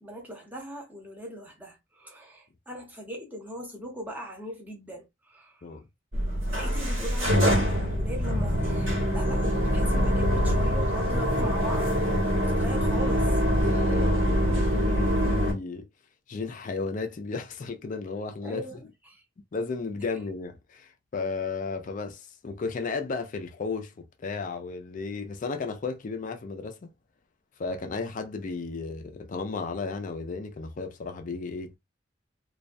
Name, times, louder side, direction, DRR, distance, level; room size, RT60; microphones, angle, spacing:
voice 1, 0.0-5.6 6.5-11.9 12.4-13.4 18.4-19.2, right 1 dB, 10° right, 0.8 m, -40 dB
sound 1, 6.1-15.5, equal, 80° right, 1.0 m, -24 dB
voice 2, 13.6-15.9 16.3-18.8 19.5-23.9 24.2-26.9 27.6-31.7, left 4 dB, 40° left, 0.4 m, -34 dB
2.3 x 2.2 x 2.5 m
head